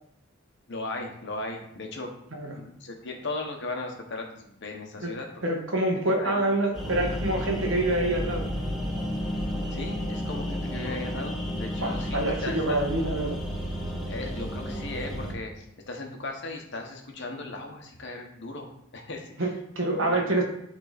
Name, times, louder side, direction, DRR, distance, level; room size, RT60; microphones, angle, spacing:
voice 1, 0.7-2.1 2.5-5.4 6.2-6.4 9.7-12.8 14.1-19.5 20.1-20.2, left 2 dB, 60° left, 2 dB, 1.4 m, -37 dB
voice 2, 5.4-8.5 10.8-11.0 11.8-13.4 19.4-20.4, right 1 dB, 65° right, 1 dB, 1.7 m, -26 dB
sound 1, 6.7-15.3, equal, ahead, 2.1 m, -32 dB
11.0 x 4.0 x 4.2 m, 0.76 s
head